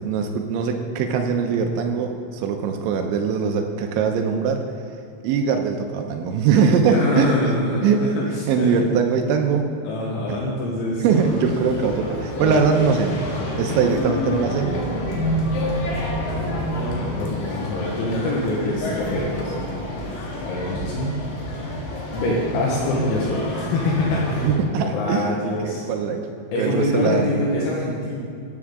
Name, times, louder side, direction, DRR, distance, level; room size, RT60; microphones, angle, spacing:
voice 1, 0.0-4.6 5.2-7.4 7.8-8.1 8.5-9.7 10.3-10.4 11.0-13.2 13.6-14.7 24.4-26.3 26.6-27.3, right 6 dB, 80° right, 4 dB, 2.9 m, -21 dB
voice 2, 6.9-8.8 9.8-11.2 12.4-12.8 16.3-19.5 20.4-21.2 21.8-24.5 24.7-25.8 26.5-28.2, left 2 dB, 75° left, -4 dB, 3.5 m, -25 dB
sound 1, 11.1-24.6, left 1 dB, 60° left, 2.7 m, -28 dB
Telephone, 19.1-19.3 20.6-21.3 22.5-23.2, right 3 dB, 55° right, 1.8 m, -32 dB
14.0 x 8.9 x 3.6 m, 2.6 s
omnidirectional pair, 5.6 m